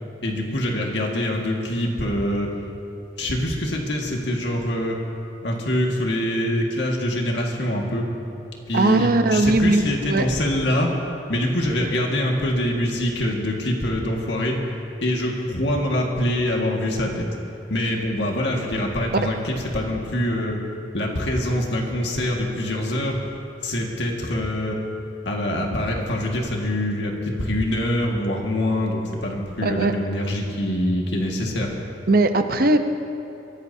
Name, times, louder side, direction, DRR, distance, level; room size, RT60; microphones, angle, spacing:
voice 1, 0.2-2.5 3.2-5.0 5.4-8.1 8.7-10.9 11.3-14.6 15.0-17.3 17.7-20.6 20.9-23.2 23.6-24.8 25.3-31.7, left 1 dB, 85° left, -1 dB, 1.9 m, -24 dB
voice 2, 8.7-10.3 29.6-29.9 32.1-32.8, right 2 dB, 55° right, 7 dB, 0.8 m, -19 dB
23.5 x 16.0 x 2.8 m, 2.9 s
head